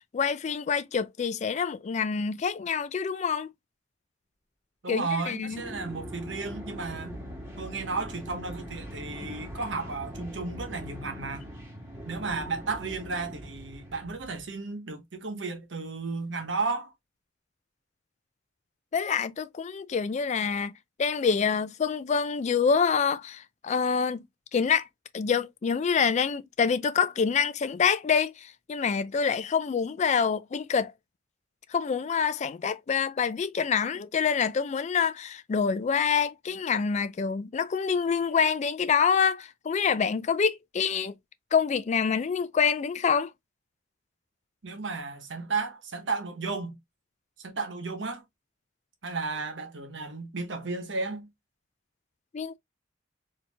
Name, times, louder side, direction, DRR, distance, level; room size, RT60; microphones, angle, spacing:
voice 1, 0.0-3.5 4.9-5.6 18.9-20.7 21.0-24.2 24.5-24.9 25.1-30.9 31.7-41.1 41.5-43.3 52.3-52.6, left 6 dB, 35° left, 0.3 m, -26 dB
voice 2, 4.8-7.2 7.6-11.5 12.1-16.9 44.6-46.8 47.4-48.2 49.0-51.3, right 4 dB, 70° right, 1.1 m, -33 dB
sound 1, 5.4-14.4, equal, 15° right, 1.9 m, -41 dB
4.3 x 2.8 x 2.2 m
head